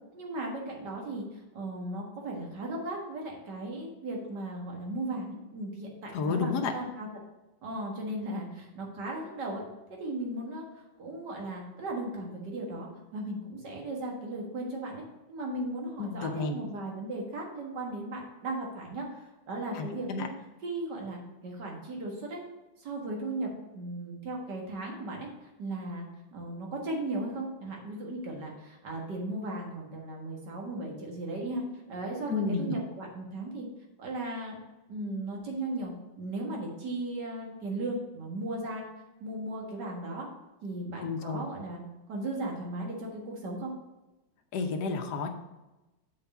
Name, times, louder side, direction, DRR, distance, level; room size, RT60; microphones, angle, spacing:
voice 1, 0.1-1.2 1.5-7.1 7.6-9.6 10.0-10.7 11.0-15.0 15.3-19.1 19.5-20.3 20.6-22.4 22.8-25.3 25.6-26.1 26.3-33.7 34.0-34.6 34.9-35.9 36.2-38.8 39.2-40.3 40.6-41.8 42.1-43.7, right 2 dB, 60° right, -1 dB, 2.2 m, -36 dB
voice 2, 6.1-6.7 16.0-16.6 19.7-20.3 32.3-32.8 41.0-41.4 44.5-45.3, left 4 dB, 60° left, 4 dB, 1.4 m, -31 dB
6.7 x 4.7 x 5.8 m, 1.0 s
omnidirectional pair, 2.1 m